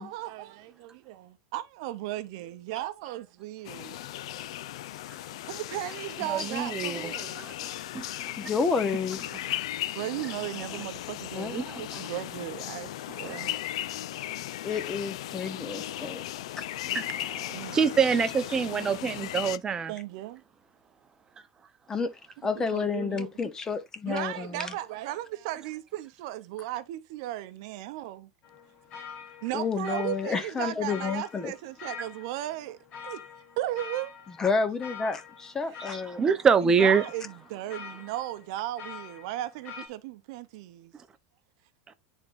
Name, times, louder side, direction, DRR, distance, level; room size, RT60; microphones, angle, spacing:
voice 1, 0.0-4.0 5.3-7.6 9.3-9.5 9.9-13.5 15.9-16.2 17.1-17.2 17.5-17.7 19.9-20.4 22.4-23.5 24.0-28.3 29.4-32.8 33.0-33.2 33.6-34.1 35.6-35.9 36.6-40.9, right 14 dB, 65° right, 0.6 m, -36 dB
sound 1, 3.6-19.6, left 13 dB, 80° left, 0.4 m, -37 dB
voice 2, 6.3-7.1 7.4-7.7 7.9-8.3 11.5-11.8 13.1-13.6 16.9-17.1 17.6-19.9 36.2-37.0, right 6 dB, 20° right, 0.7 m, -25 dB
voice 3, 8.4-9.2 11.3-11.6 14.6-16.2 16.6-16.7 16.9-17.1 21.9-22.1 22.4-24.7 29.5-31.5 34.4-36.2, left 5 dB, 20° left, 0.8 m, -30 dB
sound 2, 28.4-39.9, left 6 dB, 40° left, 1.7 m, -45 dB
10.5 x 3.6 x 2.5 m
supercardioid pair, 140°, 3 cm